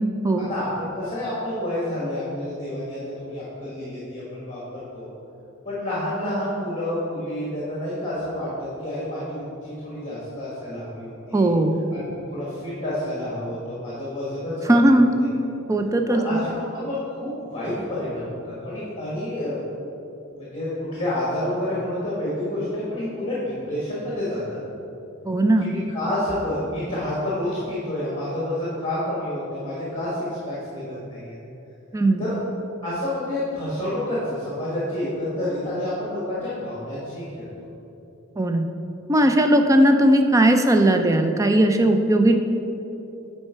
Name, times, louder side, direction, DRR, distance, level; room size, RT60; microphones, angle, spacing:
voice 1, 0.5-5.1 5.7-11.5 11.9-15.3 16.1-19.6 20.3-24.6 25.6-31.4 32.2-32.4 32.8-37.5, left 1 dB, 25° left, -8 dB, 1.6 m, -29 dB
voice 2, 11.3-11.8 14.7-15.1 15.7-16.4 25.3-25.7 31.9-32.2 38.4-38.7 39.1-42.4, right 1 dB, 15° right, 5 dB, 0.4 m, -18 dB
9.0 x 4.5 x 4.5 m, 2.9 s
head